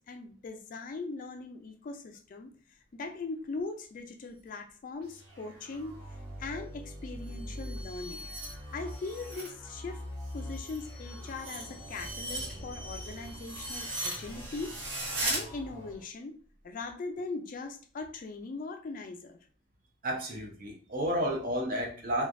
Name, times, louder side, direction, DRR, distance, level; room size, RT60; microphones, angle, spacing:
voice 1, 0.0-2.5 2.9-6.0 6.4-8.3 8.7-10.0 10.3-16.4 16.6-19.4, left 3 dB, 40° left, 5 dB, 0.3 m, -40 dB
sound 1, 5.0-16.0, equal, 25° right, 1.3 m, -44 dB
sound 2, 7.1-9.5 9.9-15.4, right 1 dB, 65° right, 1.0 m, -39 dB
voice 2, 20.0-22.3, equal, 45° right, 0 dB, 0.7 m, -31 dB
3.1 x 2.3 x 2.5 m, 0.42 s
head